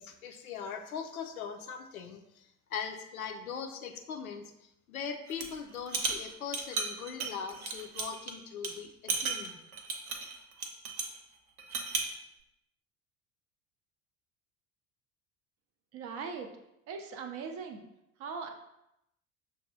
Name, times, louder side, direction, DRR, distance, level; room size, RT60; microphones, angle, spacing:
voice 1, 0.0-4.5 4.9-9.6, left 6 dB, 75° left, 4 dB, 0.5 m, -40 dB
sound 1, 5.3-5.5 5.9-8.3 8.6-8.7 9.1-11.2 11.6-12.1, right 4 dB, 80° right, 0.6 m, -34 dB
voice 2, 15.9-16.5 16.9-17.8 18.2-18.5, right 5 dB, 35° right, 4 dB, 0.4 m, -39 dB
6.1 x 2.3 x 2.6 m, 0.84 s
figure-of-eight pair, 65°, 43 cm